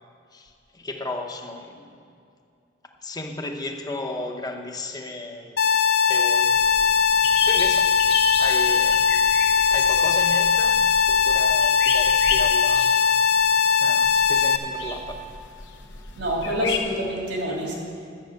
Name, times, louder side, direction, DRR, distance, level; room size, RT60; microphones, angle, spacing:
voice 1, 0.3-2.0 3.0-5.6 6.1-6.6 6.8-6.9 7.4-7.9 8.4-9.2 9.7-12.9 13.8-15.2, left 2 dB, 20° left, 3 dB, 0.9 m, -34 dB
sound 1, 5.6-14.6, left 6 dB, 60° left, 0.7 m, -20 dB
blackbird wood pigeon, 6.5-16.8, left 5 dB, 80° left, 1.0 m, -32 dB
voice 2, 16.2-17.7, equal, 75° right, -2 dB, 2.9 m, -26 dB
11.5 x 8.0 x 6.4 m, 2.4 s
head